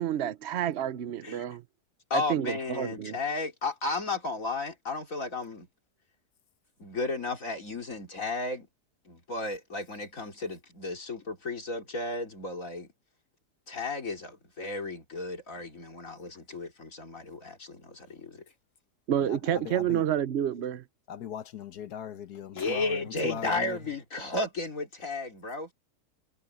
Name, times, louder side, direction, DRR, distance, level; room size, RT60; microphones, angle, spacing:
voice 1, 0.0-1.6 2.1-3.2 19.1-20.8, right 10 dB, 60° right, 0.7 m, -29 dB
voice 2, 2.1-5.7 6.8-8.7 9.0-12.9 13.7-18.4 22.5-25.7, left 3 dB, 50° left, 3.5 m, -34 dB
voice 3, 19.3-20.0 21.1-23.8, left 9 dB, 75° left, 1.5 m, -39 dB
omnidirectional pair, 1.7 m